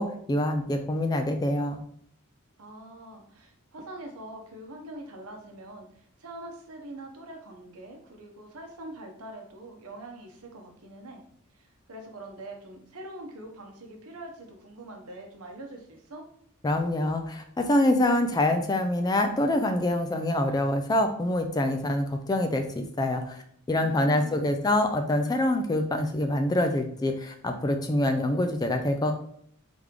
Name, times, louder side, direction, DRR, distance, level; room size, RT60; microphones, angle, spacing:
voice 1, 0.0-1.8 16.6-23.4 23.7-29.1, left 1 dB, 20° left, 5 dB, 0.3 m, -25 dB
voice 2, 2.6-11.2 11.5-16.2 23.8-24.4, right 1 dB, 80° right, 3 dB, 0.9 m, -44 dB
3.4 x 3.1 x 3.6 m, 0.67 s
head